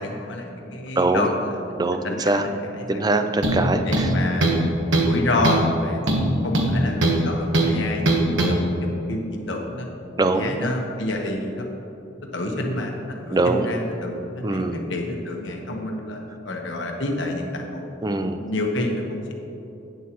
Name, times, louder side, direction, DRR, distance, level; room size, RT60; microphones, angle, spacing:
voice 1, 0.0-3.0 3.9-4.8 5.1-6.0 6.4-9.9 10.3-11.7 12.3-17.9 18.4-19.3, left 1 dB, 70° left, 1 dB, 1.3 m, -29 dB
voice 2, 1.0-1.3 1.8-2.5 2.9-4.1 10.2-10.7 13.3-13.7 14.4-14.9 18.0-18.4, right 2 dB, 20° right, 7 dB, 0.4 m, -22 dB
sound 1, 3.4-3.6 3.9-4.6 4.9-5.2 5.4-5.7 6.1-7.2 7.5-7.7 8.1-8.5, right 2 dB, 75° right, 1.2 m, -20 dB
11.0 x 9.3 x 3.1 m, 2.9 s
head